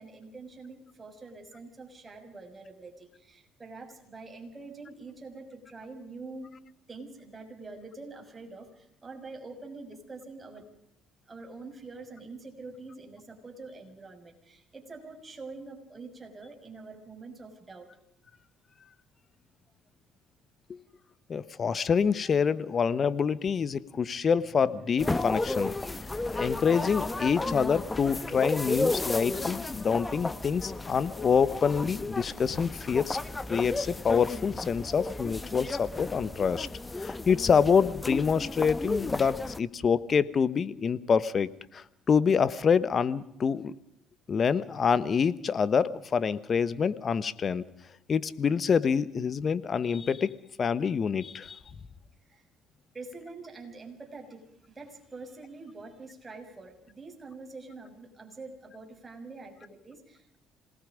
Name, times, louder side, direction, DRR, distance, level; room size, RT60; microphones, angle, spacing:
voice 1, 0.0-6.5 6.9-10.6 11.3-17.9 52.2-52.4 52.9-60.4, right 3 dB, 25° right, 3 dB, 6.1 m, -45 dB
voice 2, 21.3-33.2 33.5-36.7 37.0-43.7 44.3-47.6 48.1-50.3 50.6-51.6, left 6 dB, 45° left, 16 dB, 1.2 m, -26 dB
sound 1, 25.0-39.6, left 2 dB, 20° left, 1.2 m, -33 dB
27.0 x 19.0 x 5.2 m, 0.78 s
supercardioid pair, 75°, 0 cm